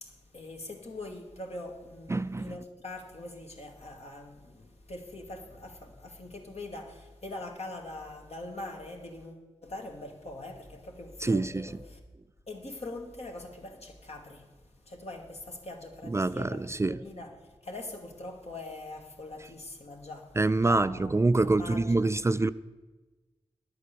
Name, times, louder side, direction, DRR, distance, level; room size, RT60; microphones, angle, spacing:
voice 1, 0.0-12.0 12.5-14.5 14.9-17.3 17.6-21.1 21.4-22.1, left 2 dB, 65° left, 1.9 m, -43 dB
voice 2, 2.1-2.5 11.2-11.7 16.1-17.0 20.4-22.5, right 2 dB, 25° right, 0.3 m, -26 dB
10.0 x 8.2 x 6.8 m
cardioid pair, 55°, 12 cm